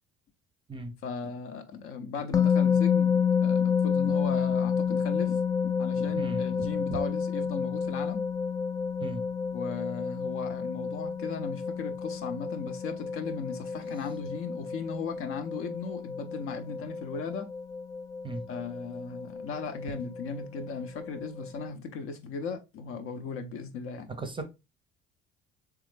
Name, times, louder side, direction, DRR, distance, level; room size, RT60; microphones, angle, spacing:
voice 1, 1.0-8.2 9.5-17.5 18.5-24.1, left 5 dB, 45° left, 0.6 m, -37 dB
sound 1, 2.3-21.7, left 6 dB, 10° left, 0.3 m, -30 dB
voice 2, 6.1-7.0 9.0-9.2 18.2-18.5 24.1-24.4, right 3 dB, 15° right, 0.6 m, -37 dB
3.7 x 3.4 x 3.1 m
figure-of-eight pair, 50°, 30 cm